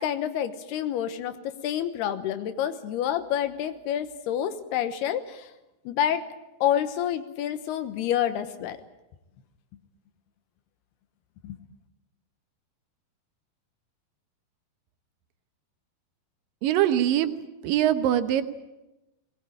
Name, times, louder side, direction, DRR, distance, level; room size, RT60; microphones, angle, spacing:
voice 1, 0.0-5.5 5.9-6.2 6.6-8.8 11.4-11.6, left 10 dB, 85° left, 9 dB, 3.2 m, -28 dB
voice 2, 16.6-17.3 17.6-18.4, right 11 dB, 70° right, 10 dB, 2.5 m, -22 dB
20.5 x 19.5 x 8.8 m, 0.98 s
omnidirectional pair, 4.5 m